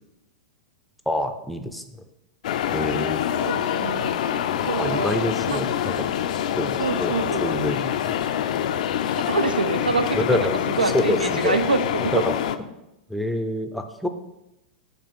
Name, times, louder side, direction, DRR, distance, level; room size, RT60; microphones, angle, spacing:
voice 1, 1.1-2.0 2.7-3.4 4.7-6.1 6.6-8.2 10.1-10.6 10.8-11.6 12.1-12.4 13.1-14.1, left 1 dB, ahead, 7 dB, 0.5 m, -27 dB
sound 1, 2.4-12.6, left 10 dB, 55° left, 0.4 m, -26 dB
voice 2, 3.4-4.1 4.7-5.6 6.8-7.5 9.2-10.5 10.8-12.2, right 4 dB, 80° right, 10 dB, 0.5 m, -26 dB
6.7 x 3.0 x 5.9 m, 0.91 s
figure-of-eight pair, 100°, 5 cm